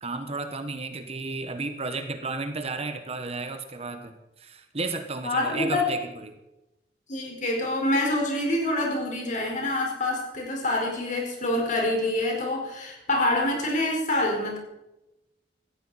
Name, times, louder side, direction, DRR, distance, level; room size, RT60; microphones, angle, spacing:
voice 1, 0.0-6.4, right 3 dB, 35° right, 8 dB, 1.1 m, -33 dB
voice 2, 5.2-5.9 7.1-14.6, left 1 dB, 45° left, 0 dB, 4.5 m, -26 dB
17.5 x 14.0 x 4.2 m, 0.93 s
head